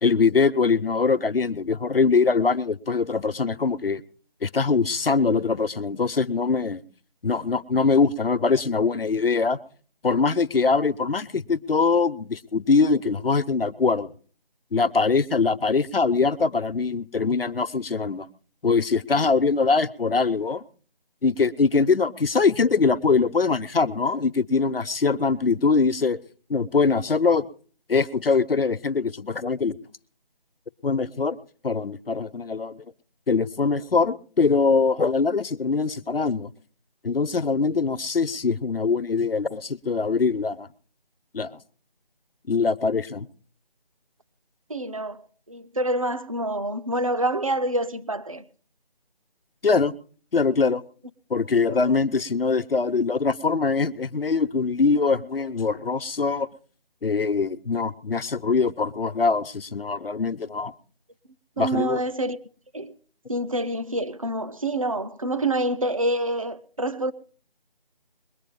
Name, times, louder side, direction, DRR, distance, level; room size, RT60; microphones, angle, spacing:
voice 1, 0.0-4.0 4.4-6.8 7.2-9.6 10.0-14.1 14.7-18.3 18.6-20.6 21.2-26.2 26.5-27.5 27.9-29.8 30.8-31.4 31.6-32.8 33.3-36.5 37.0-40.7 41.3-41.5 42.5-43.3 49.6-49.9 50.3-50.8 51.3-56.5 57.0-60.7 61.6-62.0, left 4 dB, 75° left, 0.9 m, -22 dB
voice 2, 44.7-45.2 45.5-48.4 51.7-51.8 61.6-62.4 62.7-62.9 63.3-67.1, right 1 dB, 35° right, 0.6 m, -27 dB
21.5 x 9.0 x 5.3 m
figure-of-eight pair, 170°, 29 cm